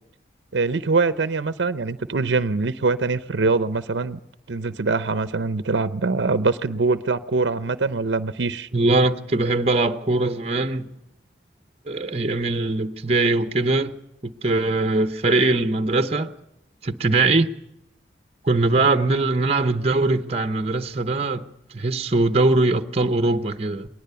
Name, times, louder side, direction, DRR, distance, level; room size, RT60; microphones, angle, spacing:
voice 1, 0.5-4.2 4.5-8.7, right 4 dB, 75° right, 0.6 m, -23 dB
voice 2, 8.7-10.9 11.9-13.9 14.2-16.3 16.8-17.6 18.4-23.9, right 2 dB, 35° right, 0.8 m, -21 dB
20.5 x 19.0 x 6.9 m
head